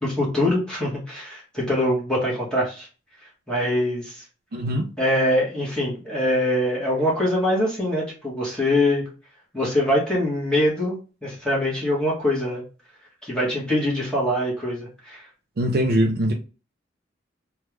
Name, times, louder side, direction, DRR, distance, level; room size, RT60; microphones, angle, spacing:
voice 1, 0.0-2.9 3.5-4.2 5.0-9.0 9.5-10.9 11.2-12.6 13.2-15.2, left 1 dB, 5° left, 1.3 m, -23 dB
voice 2, 4.5-4.9 15.6-16.3, right 1 dB, 55° right, 0.4 m, -22 dB
3.3 x 2.3 x 3.1 m
head